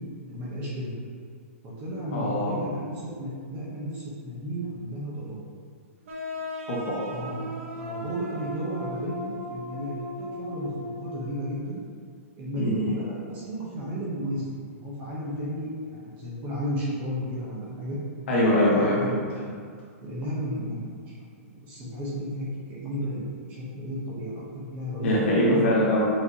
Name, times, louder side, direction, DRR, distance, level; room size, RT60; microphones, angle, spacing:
voice 1, 0.2-1.0 1.6-5.4 7.1-7.5 7.7-11.8 12.4-18.0 18.8-19.2 20.0-21.0 21.4-25.6, equal, 20° right, -6 dB, 0.8 m, -33 dB
voice 2, 2.1-2.5 6.7-7.3 12.6-13.0 18.3-19.2 25.0-26.1, left 1 dB, 55° left, -6 dB, 1.3 m, -23 dB
sound 1, 6.1-11.6, left 1 dB, 60° right, 0.9 m, -37 dB
5.8 x 2.8 x 2.7 m, 2.1 s
hypercardioid pair, 170°, 8 cm